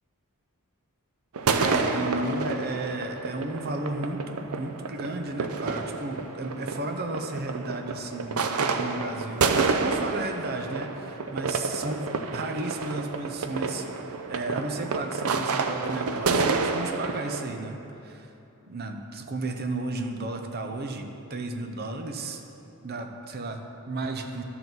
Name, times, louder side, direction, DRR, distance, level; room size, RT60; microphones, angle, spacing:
sound 1, 1.3-17.4, right 4 dB, 85° right, 0.6 m, -29 dB
voice 1, 1.5-18.3 18.7-22.4 22.8-24.4, right 2 dB, 45° right, 5 dB, 0.8 m, -33 dB
12.0 x 6.9 x 4.1 m, 2.9 s
head